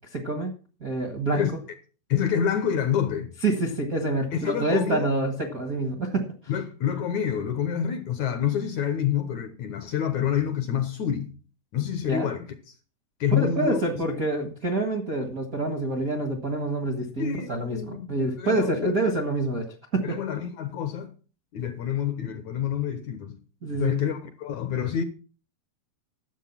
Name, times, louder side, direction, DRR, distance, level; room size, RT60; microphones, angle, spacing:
voice 1, 0.1-0.5 0.8-1.4 3.4-6.3 12.1-12.3 13.4-19.7 19.9-20.2 23.6-23.9, right 2 dB, 45° right, 1.1 m, -27 dB
voice 2, 2.1-3.3 4.3-5.1 6.5-11.3 11.7-12.7 13.2-13.8 17.2-18.1 18.4-18.9 20.0-21.1 21.5-23.4 23.7-25.0, left 9 dB, 65° left, 2.1 m, -27 dB
12.0 x 7.8 x 6.0 m
omnidirectional pair, 4.2 m